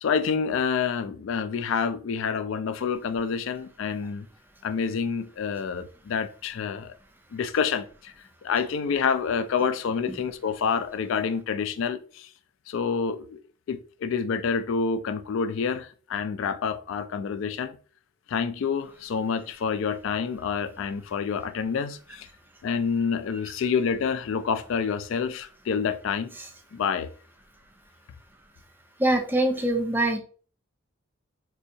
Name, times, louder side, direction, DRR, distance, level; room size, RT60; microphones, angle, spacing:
voice 1, 0.0-4.3 4.6-6.9 7.3-8.1 8.4-12.3 12.7-13.4 13.7-17.8 18.3-22.3 22.6-26.3 26.7-27.1, left 6 dB, 60° left, 0.3 m, -28 dB
voice 2, 29.0-30.2, right 1 dB, 10° right, 0.4 m, -24 dB
4.2 x 2.7 x 2.6 m
head